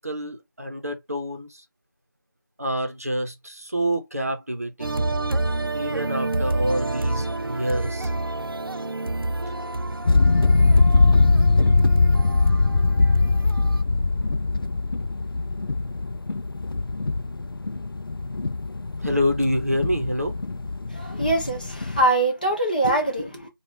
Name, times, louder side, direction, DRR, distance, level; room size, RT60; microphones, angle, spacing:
voice 1, 0.0-1.6 2.6-4.9 5.7-8.1 19.0-20.4, equal, 45° right, 0.8 m, -27 dB
sound 1, 4.8-13.8, right 2 dB, 85° right, 0.5 m, -29 dB
sound 2, 10.1-22.0, left 3 dB, 80° left, 0.4 m, -21 dB
voice 2, 20.9-23.5, right 2 dB, 25° left, 0.7 m, -23 dB
4.6 x 2.4 x 3.2 m
figure-of-eight pair, 170°, 12 cm